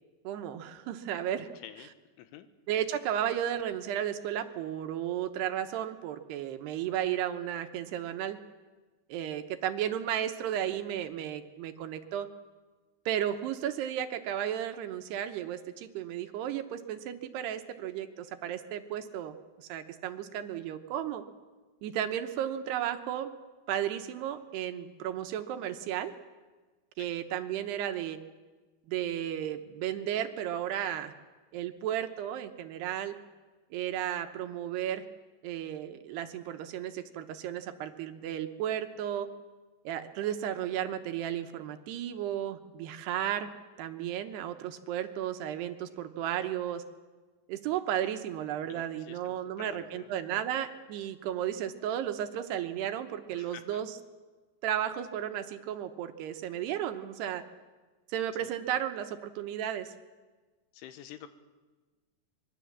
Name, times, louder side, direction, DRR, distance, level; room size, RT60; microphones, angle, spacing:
voice 1, 0.2-1.5 2.7-8.4 9.1-12.3 13.1-21.2 21.8-23.3 23.7-26.1 27.0-28.2 28.9-31.1 31.5-33.1 33.7-35.0 35.4-39.3 39.8-43.5 43.8-46.8 47.5-54.0 54.6-57.4 58.1-59.9, right 10 dB, 75° right, 7 dB, 2.8 m, -34 dB
voice 2, 48.6-50.1 53.3-53.8 58.7-58.8 60.7-61.3, left 10 dB, 85° left, 10 dB, 3.7 m, -48 dB
25.0 x 22.0 x 7.3 m, 1.3 s
omnidirectional pair, 5.4 m